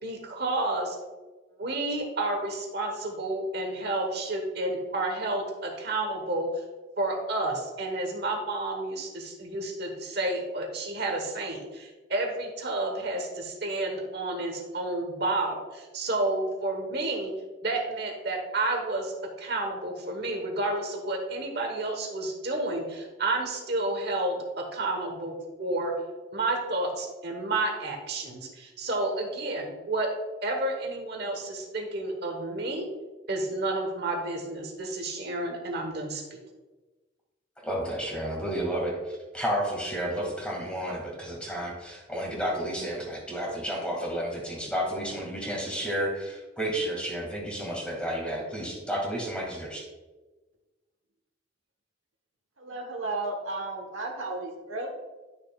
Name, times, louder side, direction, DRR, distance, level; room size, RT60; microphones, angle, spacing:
voice 1, 0.0-0.9 1.6-6.5 7.0-17.3 17.6-19.1 19.4-25.9 26.3-30.1 30.4-32.9 33.3-36.4, right 2 dB, 55° right, 2 dB, 1.3 m, -30 dB
voice 2, 37.6-49.8, equal, 5° left, -2 dB, 2.1 m, -31 dB
voice 3, 52.6-54.9, right 2 dB, 85° right, 2 dB, 1.3 m, -34 dB
11.0 x 6.7 x 2.4 m, 1.2 s
head